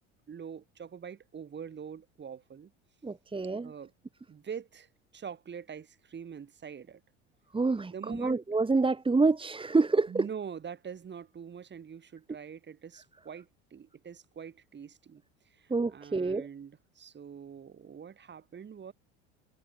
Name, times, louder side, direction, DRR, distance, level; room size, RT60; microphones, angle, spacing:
voice 1, 0.3-2.7 3.6-3.9 4.3-7.0 7.9-8.4 10.1-15.2 15.5-18.9, right 7 dB, 30° right, 4.9 m, -44 dB
voice 2, 3.0-3.7 7.5-10.3 15.7-16.5, right 3 dB, 15° right, 2.8 m, -27 dB
hypercardioid pair, 85°, 38 cm